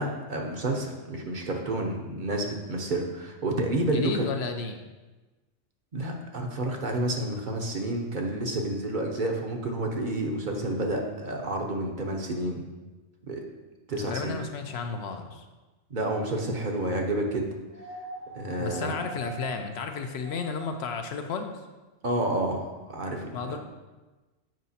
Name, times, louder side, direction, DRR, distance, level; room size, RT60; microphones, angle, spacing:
voice 1, 0.0-4.2 5.9-12.6 13.3-13.4 13.9-14.3 15.9-17.5 18.3-18.9 22.0-23.6, right 1 dB, 50° right, 1 dB, 0.8 m, -30 dB
voice 2, 3.9-4.8 13.9-15.5 18.6-21.5 23.3-23.6, left 5 dB, 70° left, 5 dB, 0.8 m, -33 dB
sound 1, 17.7-21.0 22.4-22.5, right 2 dB, 45° left, 1.1 m, -42 dB
7.7 x 4.9 x 2.7 m, 1.2 s
omnidirectional pair, 1.2 m